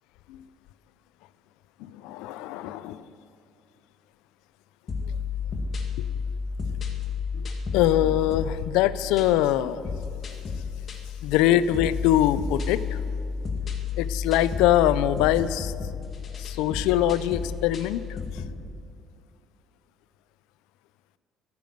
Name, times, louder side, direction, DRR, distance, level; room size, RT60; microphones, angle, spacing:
voice 1, 1.8-3.0 6.0-6.1 7.3-9.8 11.2-13.0 14.0-15.7 16.4-18.0, left 12 dB, 85° left, 16 dB, 0.5 m, -23 dB
sound 1, 4.9-18.6, left 5 dB, 45° left, 1.9 m, -32 dB
14.0 x 6.9 x 9.2 m, 2.5 s
supercardioid pair, 90°, 0 cm